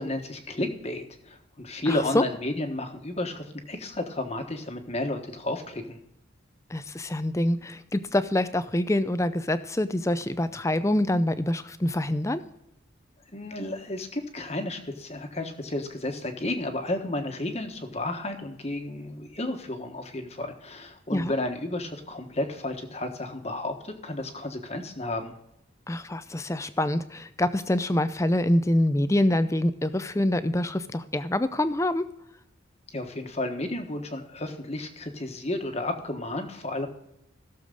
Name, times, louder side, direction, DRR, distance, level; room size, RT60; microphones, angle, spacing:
voice 1, 0.0-6.0 13.3-25.3 32.9-36.9, left 1 dB, 30° left, 5 dB, 1.4 m, -32 dB
voice 2, 1.9-2.2 6.7-12.4 21.1-21.3 25.9-32.1, left 1 dB, 15° left, 12 dB, 0.5 m, -25 dB
17.0 x 7.0 x 3.9 m, 0.83 s
head